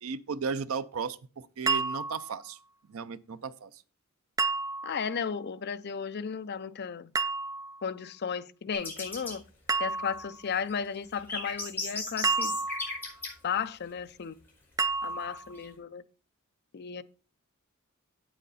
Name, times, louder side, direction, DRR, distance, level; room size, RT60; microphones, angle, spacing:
voice 1, 0.0-2.6 2.9-3.7, right 5 dB, 75° right, 0.6 m, -35 dB
sound 1, 1.7-2.4 4.4-5.1 7.1-7.8 9.7-10.4 12.2-13.1 14.8-15.5, right 4 dB, 15° right, 0.4 m, -30 dB
voice 2, 4.8-7.1 7.8-9.4 9.8-12.6 13.4-14.4 15.0-16.0 16.7-17.0, left 6 dB, 50° left, 0.5 m, -34 dB
sound 2, 8.7-9.3 10.5-13.3 15.4-15.7, left 3 dB, 10° left, 4.8 m, -36 dB
8.6 x 7.9 x 4.0 m
head